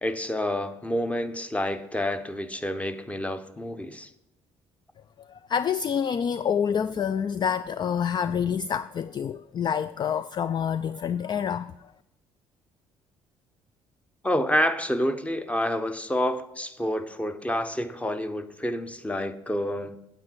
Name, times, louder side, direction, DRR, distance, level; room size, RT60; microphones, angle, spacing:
voice 1, 0.0-4.1 14.2-20.0, left 1 dB, 10° left, 0.9 m, -28 dB
voice 2, 5.3-11.7, left 7 dB, 30° left, 0.3 m, -27 dB
9.3 x 8.0 x 4.5 m
hypercardioid pair, 50°, 14 cm